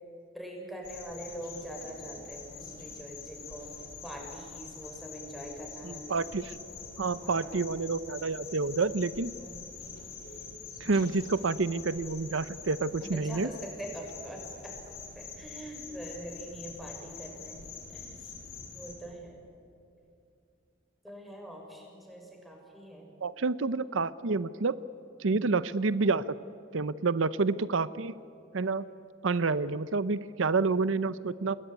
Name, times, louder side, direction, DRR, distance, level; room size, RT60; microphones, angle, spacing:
voice 1, 0.3-3.7 4.0-6.2 7.2-7.6 9.4-9.6 13.0-14.8 15.1-17.6 17.9-18.3 18.7-19.4 21.0-23.1 25.3-25.5, right 1 dB, ahead, 0 dB, 6.7 m, -43 dB
sound 1, 0.8-18.9, left 5 dB, 55° left, 7.6 m, -45 dB
voice 2, 5.8-6.6 7.0-9.4 10.8-13.5 23.2-24.8 25.2-26.2 26.7-28.1 28.5-28.8 29.2-31.6, right 4 dB, 85° right, 16 dB, 0.7 m, -28 dB
28.5 x 20.5 x 9.6 m, 2.7 s
head